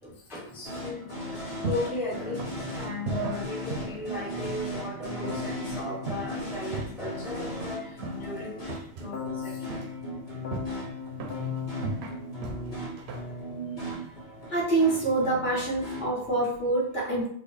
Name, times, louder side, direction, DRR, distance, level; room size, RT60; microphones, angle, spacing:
voice 1, 0.0-8.7 9.0-9.7, left 1 dB, 5° right, -4 dB, 0.5 m, -36 dB
sound 1, 0.6-16.1, equal, 85° left, 1.7 m, -37 dB
sound 2, 1.2-14.7, right 3 dB, 75° right, 0.8 m, -40 dB
Keyboard (musical), 5.2-7.5 9.1-13.4, left 7 dB, 65° left, 1.0 m, -40 dB
voice 2, 14.5-17.3, right 2 dB, 50° left, -5 dB, 1.4 m, -26 dB
3.9 x 2.3 x 3.2 m, 0.65 s
omnidirectional pair, 1.1 m